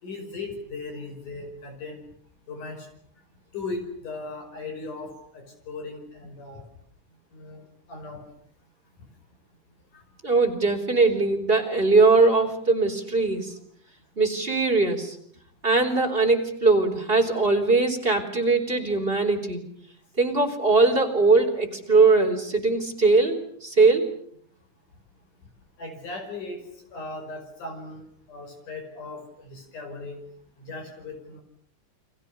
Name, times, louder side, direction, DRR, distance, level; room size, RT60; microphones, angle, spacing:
voice 1, 0.0-2.0 2.5-2.9 3.5-6.6 7.3-7.6 7.9-8.2 9.9-10.0 25.8-26.6 26.9-30.2 30.6-31.4, left 3 dB, 70° left, 5 dB, 7.1 m, -37 dB
voice 2, 10.2-13.5 14.2-15.2 15.6-19.6 20.2-24.1, right 3 dB, 15° right, 3 dB, 3.7 m, -21 dB
30.0 x 24.5 x 6.8 m, 0.64 s
omnidirectional pair, 3.7 m